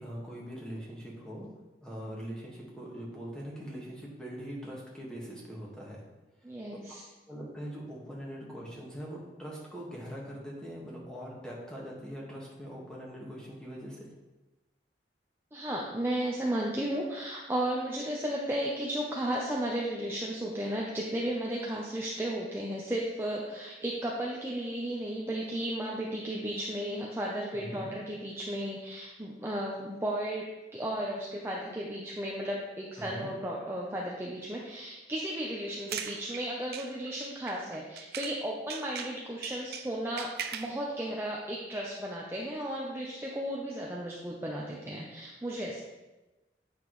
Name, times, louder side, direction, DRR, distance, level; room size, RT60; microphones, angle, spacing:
voice 1, 0.0-1.5 1.8-6.0 7.3-14.0 27.5-27.9 33.1-33.3, equal, 5° left, -4 dB, 1.6 m, -42 dB
voice 2, 6.4-7.0 15.5-45.8, right 1 dB, 15° right, -3 dB, 0.7 m, -34 dB
sound 1, 35.6-38.4 38.7-40.8, right 8 dB, 60° right, 0.5 m, -40 dB
8.8 x 5.8 x 3.2 m, 1.1 s
head